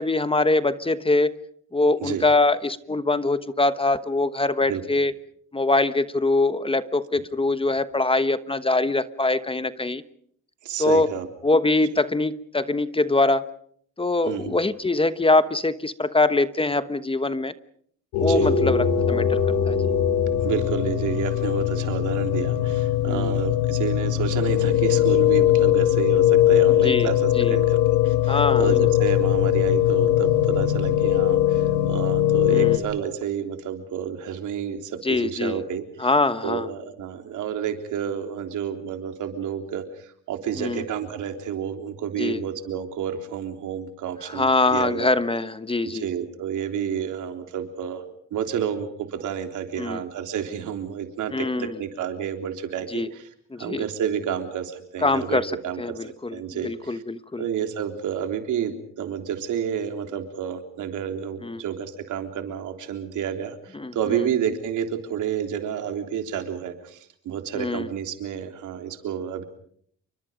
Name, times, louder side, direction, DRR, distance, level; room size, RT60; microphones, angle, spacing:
voice 1, 0.0-1.4 1.7-5.1 5.5-10.0 10.8-11.1 11.4-13.5 14.0-17.5 18.2-19.4 19.7-19.9 23.0-23.3 26.8-27.1 27.3-27.6 28.3-28.8 32.5-32.8 35.0-35.6 36.0-36.7 40.6-40.9 42.2-42.4 44.3-46.1 49.8-50.0 51.3-51.7 52.9-53.1 53.5-53.8 55.0-55.5 55.8-56.4 56.6-57.4 61.4-61.6 63.7-63.9 67.5-67.9, left 2 dB, 20° left, 12 dB, 1.2 m, -23 dB
voice 2, 10.6-11.3 14.2-14.6 18.2-18.6 20.4-35.8 36.4-45.1 45.9-48.0 48.3-53.3 53.6-57.0 57.4-69.4, right 8 dB, 80° right, 5 dB, 3.6 m, -30 dB
sound 1, 18.1-32.8, left 11 dB, 90° left, 2.2 m, -20 dB
29.0 x 24.0 x 5.2 m, 0.62 s
cardioid pair, 90°, 30 cm